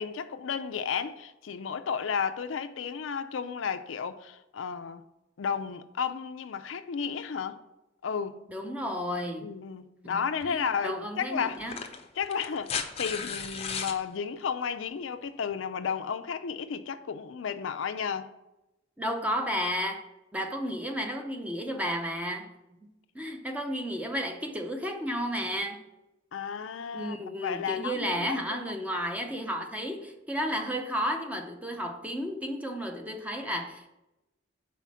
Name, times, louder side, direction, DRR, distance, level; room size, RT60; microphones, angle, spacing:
voice 1, 0.0-5.0 5.4-7.6 8.0-8.4 9.4-11.6 12.2-18.3 26.3-28.6, left 6 dB, 85° left, 0.4 m, -33 dB
voice 2, 8.5-9.5 10.1-11.8 19.0-20.0 20.3-22.5 23.1-25.8 26.9-33.9, equal, 10° right, 0.6 m, -32 dB
sound 1, 10.4-10.5 11.5-14.0 15.5-15.6, left 6 dB, 30° left, 0.5 m, -35 dB
5.6 x 4.2 x 6.1 m
head